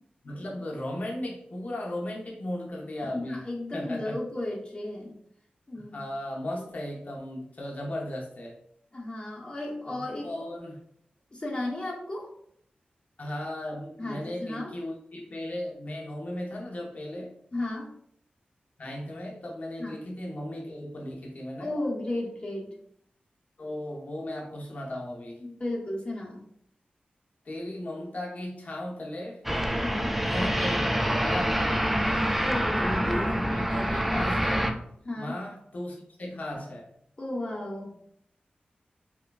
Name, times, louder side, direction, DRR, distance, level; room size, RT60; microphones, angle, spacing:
voice 1, 0.2-3.5 3.7-4.2 5.7-8.6 9.9-10.8 13.2-17.3 18.8-21.8 23.6-25.4 27.4-29.4 30.2-31.9 32.8-34.8 35.2-36.9, left 1 dB, 55° left, -1 dB, 0.7 m, -36 dB
voice 2, 3.0-5.2 5.7-6.0 8.9-10.3 11.3-12.3 14.0-14.7 17.5-17.9 19.8-19.9 21.6-22.8 25.4-26.5 29.8-30.2 32.4-32.9 35.0-35.4 37.2-37.9, left 1 dB, 35° left, -3 dB, 1.0 m, -34 dB
sound 1, 29.5-34.7, equal, 5° right, 0.4 m, -26 dB
4.4 x 2.2 x 2.4 m, 0.70 s
wide cardioid pair, 70°, 3 cm